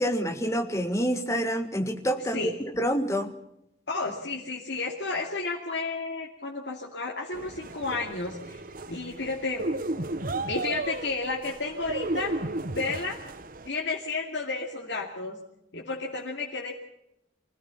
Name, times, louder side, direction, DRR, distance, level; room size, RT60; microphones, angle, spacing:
voice 1, 0.0-3.3, equal, 15° left, 7 dB, 1.6 m, -27 dB
voice 2, 3.9-8.6 8.9-9.6 10.5-12.3 12.7-13.2 13.6-15.4 15.7-16.7, left 3 dB, 70° left, -1 dB, 2.6 m, -32 dB
sound 1, 7.3-13.7, right 2 dB, 50° right, 1.0 m, -34 dB
25.0 x 16.5 x 7.2 m, 0.81 s
head